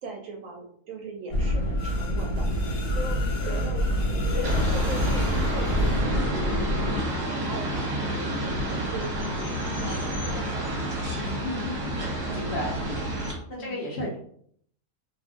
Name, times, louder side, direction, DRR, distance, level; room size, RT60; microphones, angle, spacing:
voice 1, 0.0-8.6 8.9-9.5 9.8-11.3 12.3-12.5 13.6-13.8, right 3 dB, 70° right, 1 dB, 0.8 m, -40 dB
sound 1, 1.3-7.0, equal, 70° left, 1.2 m, -26 dB
sound 2, 4.4-13.3, right 1 dB, 40° right, 0.9 m, -29 dB
voice 2, 11.2-12.8 13.5-14.2, left 1 dB, 55° left, -3 dB, 0.8 m, -34 dB
2.6 x 2.4 x 3.5 m, 0.63 s
omnidirectional pair, 1.6 m